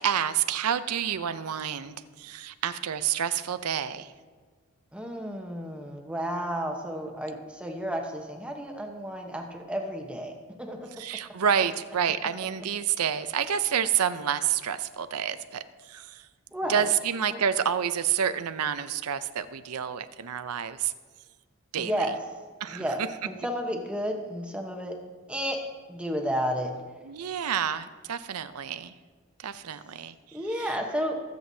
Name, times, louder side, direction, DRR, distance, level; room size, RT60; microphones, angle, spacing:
voice 1, 0.0-4.1 11.0-16.3 16.7-20.9 21.7-22.1 22.6-22.8 27.0-28.9 29.4-30.7, right 8 dB, 85° right, 12 dB, 0.6 m, -29 dB
voice 2, 4.9-10.9 16.5-16.9 17.3-17.4 21.8-22.1 22.7-25.0 25.3-25.6 25.9-26.7 30.3-31.2, equal, 5° right, 2 dB, 0.9 m, -32 dB
22.5 x 7.8 x 2.7 m, 1.5 s
head